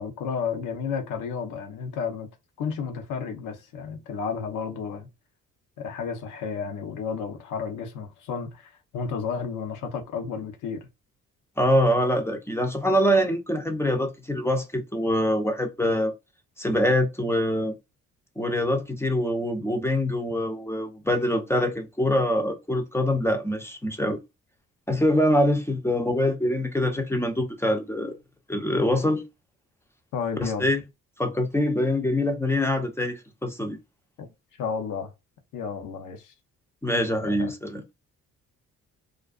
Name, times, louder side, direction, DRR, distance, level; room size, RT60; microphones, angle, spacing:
voice 1, 0.0-2.3 2.6-5.1 5.8-10.9 30.1-30.7 34.2-34.3 34.6-35.1 35.5-36.3 37.2-37.5, left 6 dB, 85° left, 0.7 m, -32 dB
voice 2, 11.6-16.1 16.6-17.7 18.4-24.2 24.9-28.1 28.5-29.2 30.4-30.8 31.2-33.8 36.8-37.8, left 1 dB, 10° left, 0.5 m, -24 dB
2.4 x 2.2 x 2.3 m
cardioid pair, 90°, 30 cm